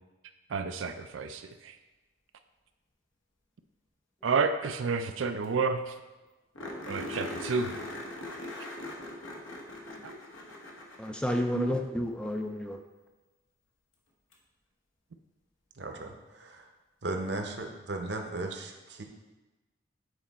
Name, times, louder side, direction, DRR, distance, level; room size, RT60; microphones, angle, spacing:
voice 1, 0.5-1.8 4.2-5.9 6.9-7.7 10.0-10.2 11.5-11.7, right 4 dB, 80° right, 8 dB, 0.4 m, -30 dB
sound 1, 5.2-5.3 5.4-5.5 5.9-6.0 6.5-12.0 14.3-14.4 17.3-17.4, left 1 dB, 80° left, 1.1 m, -41 dB
voice 2, 11.0-12.8, left 1 dB, 5° left, 4 dB, 0.3 m, -31 dB
voice 3, 15.8-16.7 17.0-19.0, right 2 dB, 60° right, 3 dB, 0.8 m, -36 dB
8.1 x 4.2 x 4.1 m, 1.1 s
head